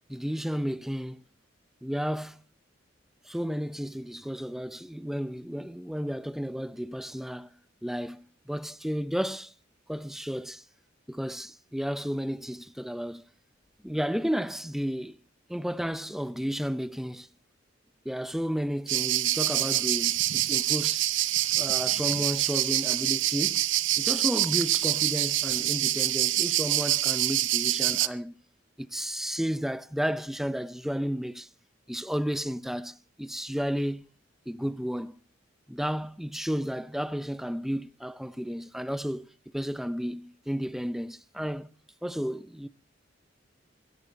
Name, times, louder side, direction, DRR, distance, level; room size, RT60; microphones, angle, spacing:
voice 1, 0.1-1.2 1.8-2.4 3.2-7.5 7.8-9.5 9.9-10.6 11.1-13.2 13.8-15.2 15.5-17.3 18.0-21.1 21.4-23.7 24.0-28.3 28.8-31.5 31.9-34.1 34.5-35.2 35.7-39.3 39.5-41.7 42.0-42.7, equal, ahead, 0.6 m, -32 dB
sound 1, 18.9-28.1, right 14 dB, 75° right, 0.7 m, -26 dB
23.0 x 10.5 x 4.0 m
head